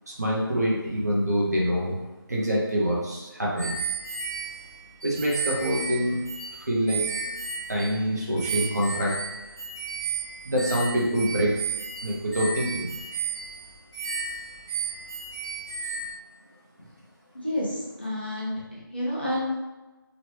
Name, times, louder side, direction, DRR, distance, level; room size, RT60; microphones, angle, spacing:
voice 1, 0.2-2.0 2.3-3.7 5.0-6.2 6.7-7.1 7.7-9.2 10.4-11.6 12.0-12.9, equal, 45° right, -4 dB, 0.9 m, -25 dB
sound 1, 3.6-8.1 8.4-16.1, right 5 dB, 10° right, 0.5 m, -33 dB
voice 2, 17.3-19.6, left 1 dB, 25° left, -6 dB, 0.6 m, -30 dB
3.0 x 2.4 x 3.2 m, 1.1 s
figure-of-eight pair, 180°, 12 cm